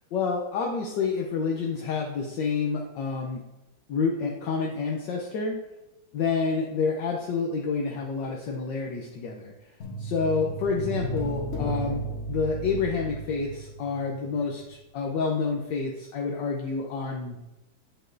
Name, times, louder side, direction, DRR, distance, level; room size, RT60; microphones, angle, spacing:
voice 1, 0.1-3.4 3.9-5.5 6.1-9.5 10.0-12.0 12.3-17.4, left 5 dB, 70° left, 0 dB, 1.3 m, -28 dB
sound 1, 9.8-14.3 14.5-14.6, right 1 dB, 45° left, 1.2 m, -34 dB
8.1 x 6.4 x 2.6 m, 1.0 s
omnidirectional pair, 2.1 m